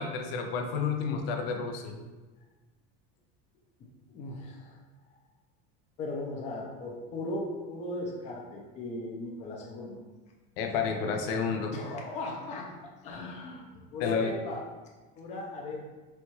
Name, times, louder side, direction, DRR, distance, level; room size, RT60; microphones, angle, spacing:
voice 1, 0.0-1.9 10.6-11.7 14.0-14.3, left 5 dB, 80° left, 4 dB, 0.6 m, -30 dB
voice 2, 4.1-4.8 6.0-10.0 11.7-12.7 13.0-14.7 15.2-15.8, left 2 dB, 25° left, -1 dB, 0.4 m, -37 dB
4.2 x 2.2 x 3.0 m, 1.3 s
cardioid pair, 155°, 29 cm